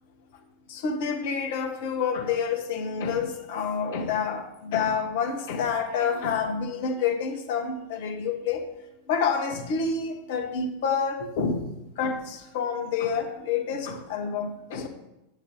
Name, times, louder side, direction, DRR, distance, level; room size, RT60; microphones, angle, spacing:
voice 1, 0.7-8.6 9.1-11.7 12.0-14.9, left 6 dB, 50° left, 5 dB, 1.4 m, -28 dB
8.8 x 8.5 x 3.8 m, 0.91 s
figure-of-eight pair, 90°, 0 cm